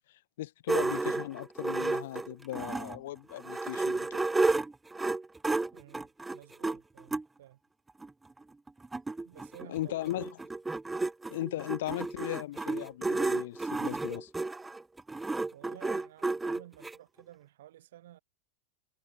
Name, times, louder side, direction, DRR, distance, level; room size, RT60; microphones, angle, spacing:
voice 1, 0.4-4.3 9.7-10.3 11.3-14.3, left 15 dB, 55° left, 1.0 m, -37 dB
sound 1, 0.7-3.0 3.4-7.2 8.0-8.1 8.4-8.5 8.7-17.0, right 3 dB, 10° right, 1.1 m, -32 dB
voice 2, 5.7-7.6 9.2-10.3 15.5-18.2, right 13 dB, 55° right, 5.2 m, -53 dB
figure-of-eight pair, 90°, 0 cm